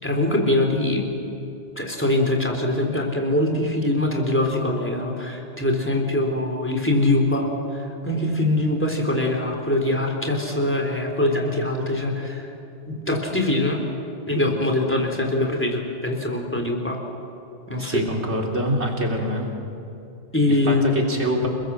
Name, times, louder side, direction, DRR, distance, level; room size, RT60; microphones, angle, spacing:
voice 1, 0.0-1.1 1.8-7.5 8.0-12.5 12.9-13.8 14.3-17.0 17.7-18.0 20.3-21.0, left 1 dB, 10° left, 1 dB, 3.8 m, -23 dB
voice 2, 17.8-19.5 20.5-21.5, right 1 dB, 80° right, 1 dB, 3.7 m, -25 dB
29.0 x 20.5 x 7.8 m, 2.9 s
omnidirectional pair, 1.1 m